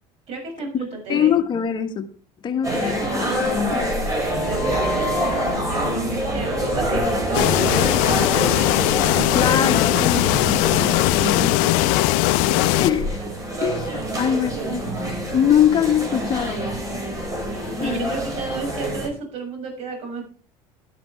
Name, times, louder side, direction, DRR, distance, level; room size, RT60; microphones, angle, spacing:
voice 1, 0.3-1.3 2.7-3.4 4.4-9.8 10.6-10.9 11.2-12.4 14.2-14.8 17.8-20.3, right 3 dB, 55° right, 6.9 m, -33 dB
voice 2, 1.1-2.1 2.4-3.9 9.3-10.2 12.8-13.2 13.6-14.8 15.3-16.7 17.7-18.1, left 9 dB, 35° left, 1.5 m, -22 dB
sound 1, 2.6-19.1, right 1 dB, 25° right, 5.6 m, -26 dB
sound 2, 4.3-11.7, equal, 5° left, 4.2 m, -32 dB
sound 3, 7.3-12.9, left 20 dB, 80° left, 0.4 m, -19 dB
12.0 x 11.0 x 3.3 m
cardioid pair, 115°, 13 cm